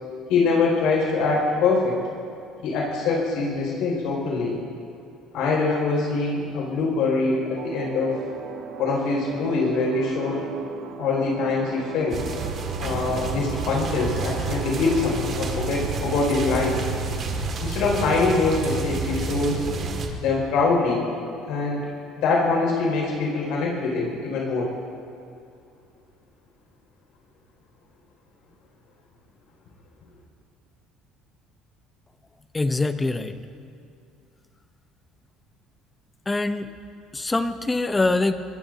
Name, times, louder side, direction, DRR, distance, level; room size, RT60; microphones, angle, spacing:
voice 1, 0.3-2.0 2.6-4.6 5.3-8.2 8.8-10.4 11.0-12.2 12.8-16.9 17.6-19.6 20.2-21.0 21.4-21.8 22.2-24.7, left 3 dB, 65° left, -2 dB, 5.2 m, -23 dB
sound 1, 7.6-18.6, right 6 dB, 60° right, 1.5 m, -40 dB
sound 2, 12.1-20.1, right 4 dB, 35° right, 1.9 m, -29 dB
voice 2, 32.5-33.4 36.3-36.7 37.1-38.4, left 2 dB, 10° left, 9 dB, 0.6 m, -24 dB
25.5 x 21.0 x 2.7 m, 2.5 s
cardioid pair, 170°, 0 cm